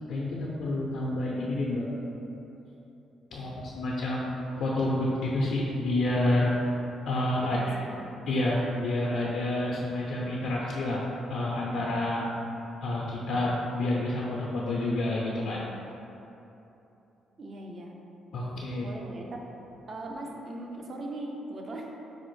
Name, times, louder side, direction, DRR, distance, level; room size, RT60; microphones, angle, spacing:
voice 1, 0.1-1.9 3.3-6.5 7.1-7.6 8.3-11.0 11.3-12.2 12.8-15.6 18.3-18.9, left 1 dB, 75° left, -5 dB, 0.4 m, -29 dB
voice 2, 7.4-8.1 17.4-17.9 18.8-19.5 19.9-21.9, right 1 dB, 45° right, 0 dB, 0.5 m, -39 dB
5.0 x 2.0 x 3.1 m, 3.0 s
cardioid pair, 90°, 0 cm